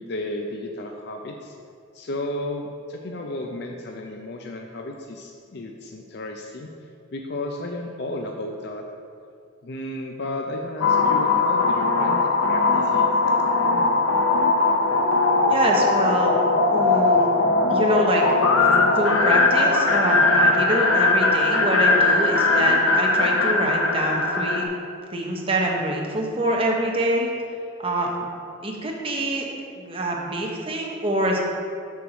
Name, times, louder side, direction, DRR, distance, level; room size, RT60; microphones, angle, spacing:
voice 1, 0.0-1.6 1.9-6.7 7.1-8.8 9.6-12.1 12.5-13.2, left 1 dB, 55° left, 2 dB, 0.5 m, -33 dB
sound 1, 10.8-24.6, left 3 dB, 85° left, 0.7 m, -20 dB
voice 2, 15.5-16.4 16.7-17.3 17.7-24.6 25.1-27.3 27.8-28.3 28.6-29.4 29.8-31.4, right 1 dB, 25° right, -1 dB, 0.9 m, -25 dB
6.9 x 4.5 x 6.2 m, 2.3 s
head